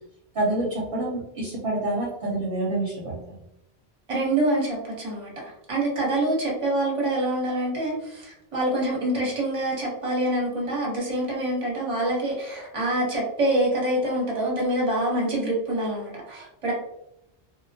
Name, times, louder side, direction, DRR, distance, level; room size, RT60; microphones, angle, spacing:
voice 1, 0.3-3.3, right 2 dB, 60° right, -4 dB, 0.8 m, -27 dB
voice 2, 4.1-16.7, right 1 dB, 30° right, -3 dB, 0.8 m, -26 dB
2.2 x 2.1 x 2.6 m, 0.80 s
omnidirectional pair, 1.2 m